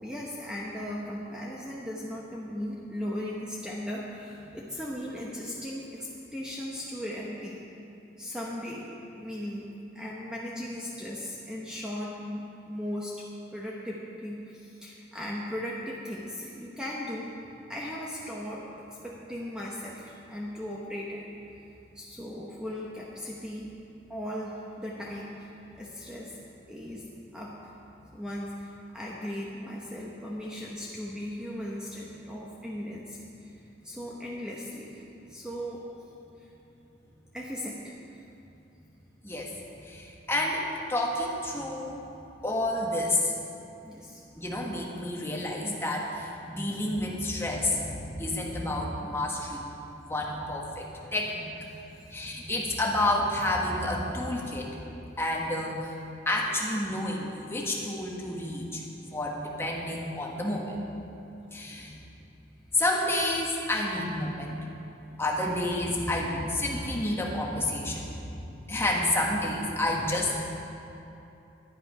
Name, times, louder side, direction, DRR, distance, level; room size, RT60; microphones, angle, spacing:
voice 1, 0.0-7.6 8.2-9.7 9.9-13.2 13.5-17.3 17.7-21.2 21.9-23.7 24.1-26.4 26.7-27.0 27.3-27.7 28.1-35.8 36.4-36.5 37.3-38.2 43.8-44.2 50.9-51.3 51.7-52.1 69.7-70.0, equal, 5° right, -5 dB, 1.0 m, -38 dB
voice 2, 39.2-39.6 39.8-42.0 42.4-43.3 44.4-49.7 50.1-51.5 52.1-54.8 55.2-55.9 56.2-58.8 59.1-60.8 61.5-62.0 62.7-64.6 65.2-68.2 68.7-70.4, left 1 dB, 15° left, -2 dB, 1.3 m, -30 dB
11.0 x 11.0 x 5.4 m, 2.9 s
head